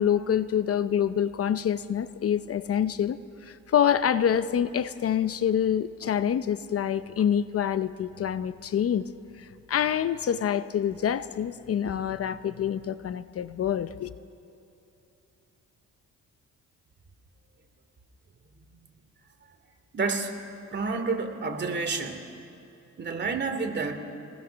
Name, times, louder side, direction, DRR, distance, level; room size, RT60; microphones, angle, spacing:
voice 1, 0.0-9.1 9.4-14.1, left 9 dB, 50° left, 0.7 m, -26 dB
voice 2, 19.9-20.3 20.7-22.2 23.0-23.9, right 4 dB, 35° right, 2.6 m, -29 dB
26.5 x 20.0 x 6.3 m
cardioid pair, 90°, 30 cm